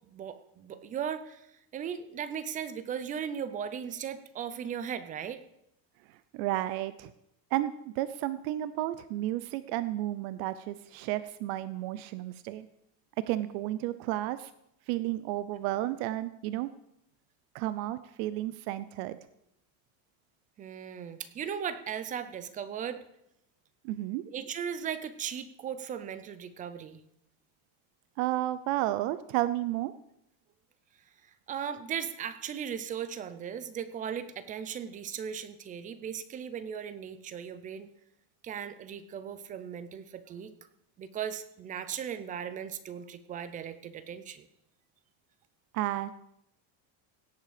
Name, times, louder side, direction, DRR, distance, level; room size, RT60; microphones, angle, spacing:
voice 1, 0.1-1.5 1.7-5.4 20.6-23.0 24.3-27.0 31.2-37.9 38.4-40.5 41.0-44.5, right 8 dB, 20° right, 13 dB, 0.3 m, -37 dB
voice 2, 6.1-7.1 7.5-12.7 13.2-14.5 14.9-16.7 17.5-19.2 23.8-24.2 28.2-29.9 45.7-46.1, right 15 dB, 75° right, 14 dB, 0.7 m, -32 dB
17.0 x 7.6 x 5.0 m, 0.78 s
cardioid pair, 180°, 43 cm